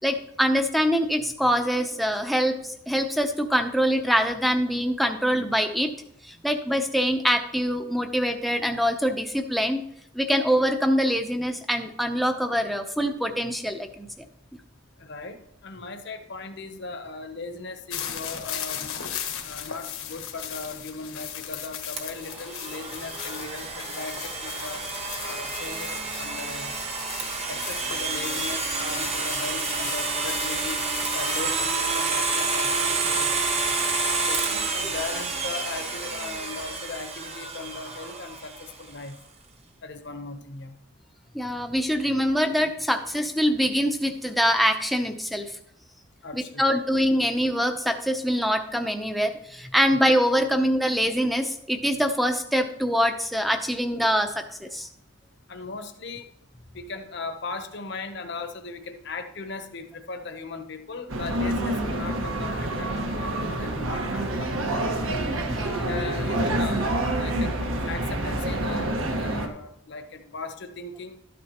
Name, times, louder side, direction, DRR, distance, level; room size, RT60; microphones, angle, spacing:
voice 1, 0.0-5.9 6.2-9.8 10.1-14.1 41.3-45.5 46.3-54.9 65.5-65.9, equal, ahead, 4 dB, 0.6 m, -24 dB
voice 2, 15.0-19.0 19.4-24.8 25.2-26.8 27.5-30.8 31.1-33.3 34.2-39.2 39.8-40.8 46.2-46.6 49.9-50.0 55.5-56.3 56.7-65.0 65.8-71.2, left 3 dB, 50° left, 7 dB, 0.8 m, -38 dB
sound 1, 17.9-31.4, left 9 dB, 85° left, 1.2 m, -37 dB
Domestic sounds home sounds, 22.0-38.7, right 4 dB, 30° right, 1.1 m, -29 dB
sound 2, 61.1-69.5, right 1 dB, 70° right, 1.4 m, -27 dB
12.5 x 9.5 x 3.0 m, 0.75 s
head